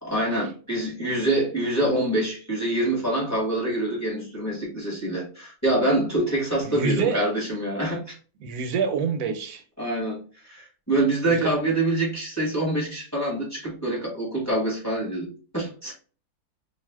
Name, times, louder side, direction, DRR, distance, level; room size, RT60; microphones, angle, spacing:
voice 1, 0.0-8.2 9.8-15.9, right 1 dB, 15° left, 0.9 m, -26 dB
voice 2, 6.6-7.2 8.4-9.6 11.4-11.5, right 6 dB, 80° right, 1.1 m, -26 dB
2.5 x 2.3 x 3.3 m
omnidirectional pair, 1.6 m